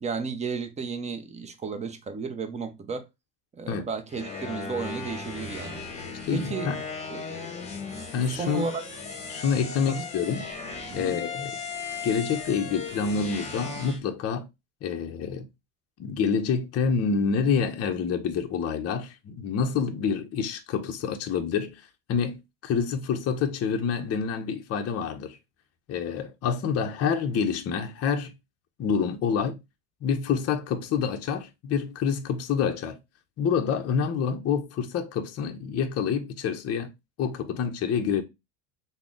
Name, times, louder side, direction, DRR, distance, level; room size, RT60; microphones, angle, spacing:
voice 1, 0.0-3.1 3.5-5.9 6.3-7.6 8.3-8.8 9.9-10.0 10.9-11.2, right 5 dB, 15° right, 0.5 m, -33 dB
sound 1, 4.1-14.0, left 4 dB, 15° left, 1.1 m, -37 dB
voice 2, 6.3-6.8 8.1-8.7 9.3-10.5 10.9-11.6 12.0-14.5 14.8-15.5 16.0-21.8 22.1-25.4 25.9-28.3 28.8-29.6 30.0-33.0 33.4-36.9 37.2-38.2, left 6 dB, 30° left, 0.6 m, -27 dB
3.7 x 2.1 x 3.5 m
supercardioid pair, 105°, 48 cm